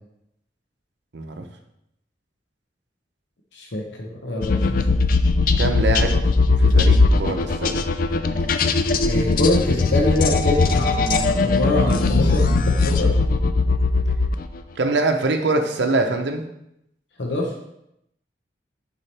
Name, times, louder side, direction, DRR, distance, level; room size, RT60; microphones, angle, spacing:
voice 1, 1.1-1.4 5.6-6.2 6.6-7.9 14.8-16.4, right 2 dB, 75° right, 4 dB, 0.7 m, -23 dB
voice 2, 3.5-4.8 9.0-13.1 17.2-17.5, left 1 dB, 75° left, -1 dB, 1.0 m, -24 dB
sound 1, 4.4-14.6, left 3 dB, 50° left, 0.4 m, -19 dB
6.9 x 4.7 x 3.3 m, 0.81 s
head